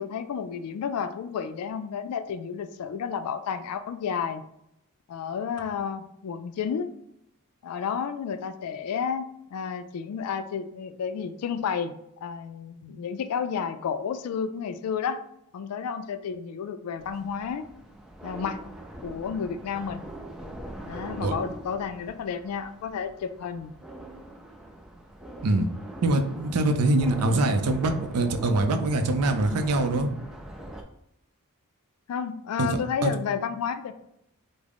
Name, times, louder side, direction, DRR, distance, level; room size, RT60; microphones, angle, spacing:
voice 1, 0.0-4.4 5.1-6.9 7.6-11.9 12.2-15.2 15.5-17.6 18.2-18.6 19.0-20.0 20.9-23.7 27.3-27.6 32.1-33.9, left 7 dB, 80° left, 10 dB, 0.3 m, -31 dB
sound 1, 17.0-30.8, right 1 dB, ahead, 0.4 m, -42 dB
voice 2, 26.0-30.1 32.6-32.7 33.0-33.1, right 2 dB, 90° right, 6 dB, 0.5 m, -23 dB
3.5 x 2.1 x 3.5 m, 0.78 s
head